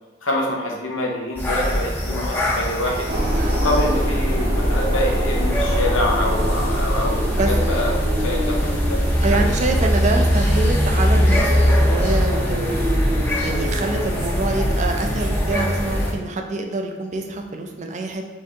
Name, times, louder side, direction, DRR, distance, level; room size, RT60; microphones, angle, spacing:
voice 1, 0.2-3.1 3.5-9.4, left 1 dB, 90° left, -1 dB, 0.9 m, -26 dB
sound 1, 1.4-16.1, equal, 10° left, 0.6 m, -22 dB
sound 2, 3.1-16.0, equal, 60° right, 0.9 m, -25 dB
voice 2, 9.2-11.5 11.8-13.0 13.4-18.3, right 3 dB, 40° right, 3 dB, 0.4 m, -25 dB
4.4 x 3.5 x 2.8 m, 1.2 s
head